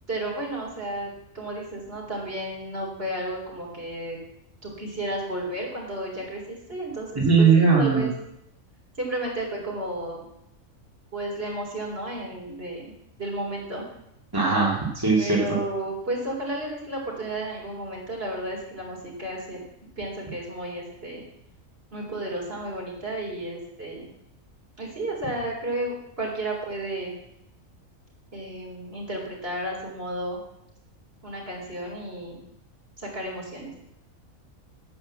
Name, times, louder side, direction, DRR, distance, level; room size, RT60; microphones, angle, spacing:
voice 1, 0.1-4.2 4.6-8.1 9.0-10.2 11.1-12.8 13.2-13.8 15.2-19.6 20.0-21.2 21.9-24.1 24.8-27.2 28.3-30.4 31.2-32.4 33.0-33.8, right 1 dB, 45° right, -2 dB, 4.2 m, -32 dB
voice 2, 7.2-8.1 14.3-15.4, right 5 dB, 15° right, -5 dB, 2.5 m, -19 dB
10.5 x 8.7 x 7.5 m, 0.80 s
omnidirectional pair, 1.4 m